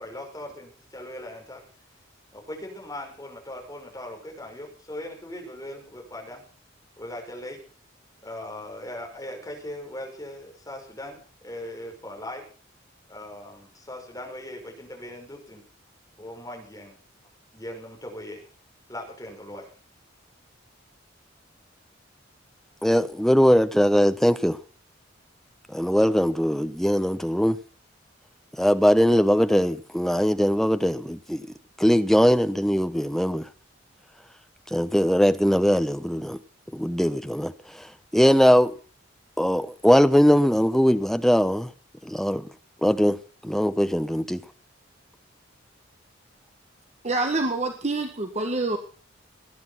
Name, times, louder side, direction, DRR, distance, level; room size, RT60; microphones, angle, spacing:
voice 1, 0.0-1.6 2.3-6.4 7.0-7.6 8.2-12.4 13.1-15.6 16.2-17.0 17.5-18.5 18.9-19.7, left 1 dB, 15° left, 5.7 m, -39 dB
voice 2, 22.8-24.6 25.7-27.6 28.6-31.5 31.8-33.5 34.7-36.4 36.7-38.7 39.4-41.7 42.0-42.5 42.8-43.2 43.4-44.4, equal, ahead, 0.9 m, -21 dB
voice 3, 47.0-48.8, right 2 dB, 35° right, 1.6 m, -26 dB
20.0 x 10.5 x 5.8 m
head